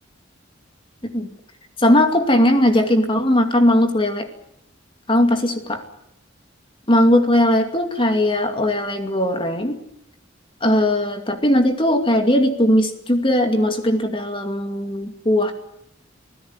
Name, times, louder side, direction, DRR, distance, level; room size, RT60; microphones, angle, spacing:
voice 1, 1.8-4.3 5.1-5.8 6.9-9.8 10.6-15.5, left 1 dB, 25° left, 6 dB, 2.4 m, -18 dB
25.5 x 16.5 x 9.6 m, 0.78 s
head